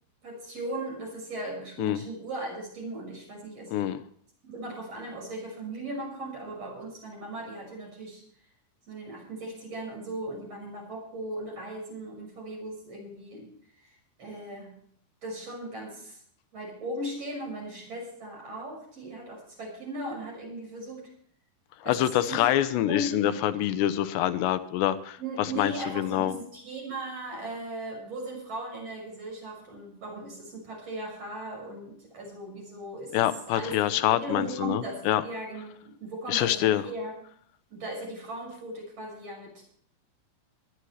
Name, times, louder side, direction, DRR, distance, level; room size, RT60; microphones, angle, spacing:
voice 1, 0.2-3.9 4.5-8.2 8.9-13.5 13.8-14.8 15.2-16.2 16.5-21.1 21.8-22.5 22.9-23.3 25.2-33.8 34.0-37.2 37.7-39.7, right 1 dB, 35° right, 0 dB, 7.2 m, -38 dB
voice 2, 21.9-25.2 25.6-26.3 33.1-35.2 36.3-36.8, left 12 dB, 80° left, 12 dB, 3.1 m, -26 dB
21.0 x 12.5 x 3.3 m, 0.62 s
omnidirectional pair, 5.0 m